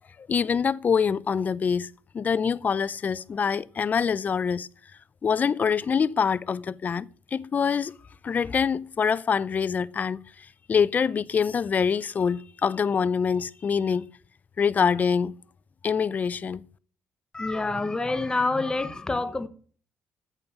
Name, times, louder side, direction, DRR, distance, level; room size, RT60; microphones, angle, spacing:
voice 1, 0.2-1.9 2.1-4.7 5.2-7.9 8.2-14.1 14.6-15.4 15.8-16.6, left 6 dB, 40° left, 0.5 m, -25 dB
voice 2, 17.3-19.5, left 3 dB, 15° left, 0.9 m, -27 dB
9.0 x 7.0 x 7.3 m
cardioid pair, 95°, 4 cm